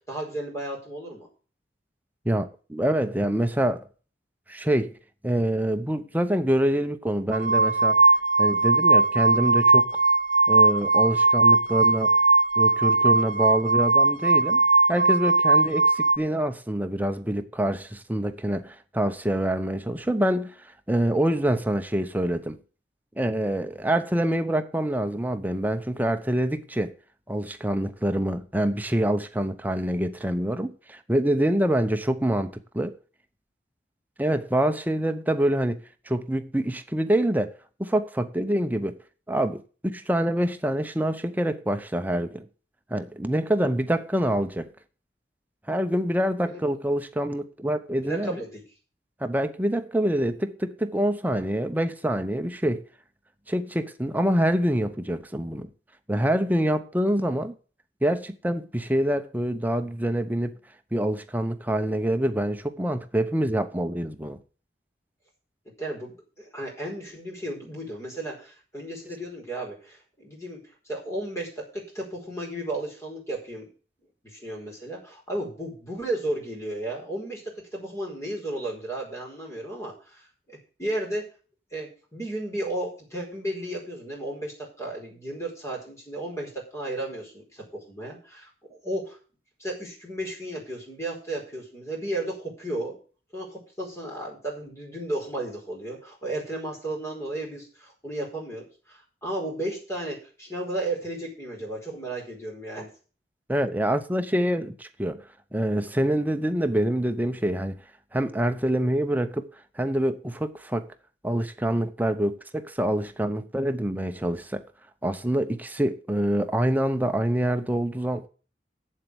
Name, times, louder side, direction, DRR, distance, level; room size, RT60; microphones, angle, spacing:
voice 1, 0.1-1.3 46.4-46.6 48.0-48.6 65.8-70.6 70.8-73.7 74.2-80.2 80.5-81.2 81.7-89.2 89.6-93.0 93.3-102.9, right 1 dB, 15° left, 4.6 m, -34 dB
voice 2, 2.2-3.9 4.5-4.9 5.2-8.0 8.4-10.0 10.5-12.2 12.6-14.6 14.9-22.6 23.2-26.9 27.3-32.9 34.2-37.5 37.8-39.0 39.3-42.5 42.9-44.7 45.7-48.4 49.2-52.9 53.5-55.7 56.1-57.5 58.0-60.6 60.9-64.4 103.5-105.2 105.5-107.8 108.1-109.5 109.8-110.9 111.2-114.6 115.0-118.3, right 1 dB, 10° right, 0.8 m, -26 dB
sound 1, 7.3-16.2, right 3 dB, 50° right, 0.8 m, -19 dB
8.1 x 7.5 x 8.0 m
head